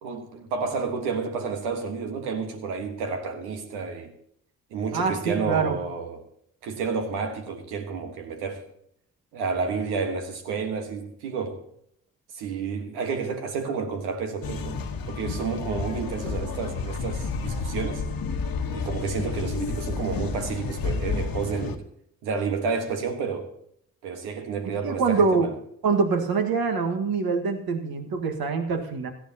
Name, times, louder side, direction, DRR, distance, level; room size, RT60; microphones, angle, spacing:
voice 1, 0.0-4.1 4.7-6.2 6.6-8.6 9.3-11.6 12.3-14.8 15.1-18.0 18.7-21.8 22.2-23.5 24.0-25.5, right 5 dB, 90° right, 1.5 m, -30 dB
voice 2, 4.9-5.8 24.8-25.5 25.8-29.1, right 4 dB, 65° right, 1.8 m, -24 dB
sound 1, 14.4-21.8, left 4 dB, 65° left, 1.3 m, -30 dB
17.0 x 12.5 x 2.9 m
hypercardioid pair, 40°, 39 cm